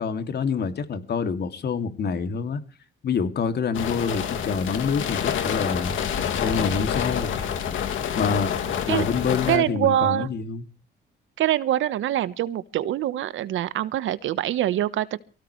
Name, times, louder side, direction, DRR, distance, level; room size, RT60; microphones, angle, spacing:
voice 1, 0.0-2.6 3.0-5.9 6.3-7.3 8.1-8.5 8.9-10.6, left 5 dB, 55° left, 2.6 m, -26 dB
sound 1, 3.7-9.6, left 8 dB, 80° left, 2.5 m, -27 dB
voice 2, 9.5-10.3 11.4-15.2, right 12 dB, 80° right, 1.2 m, -24 dB
24.0 x 16.5 x 3.2 m
cardioid pair, 90°, 20 cm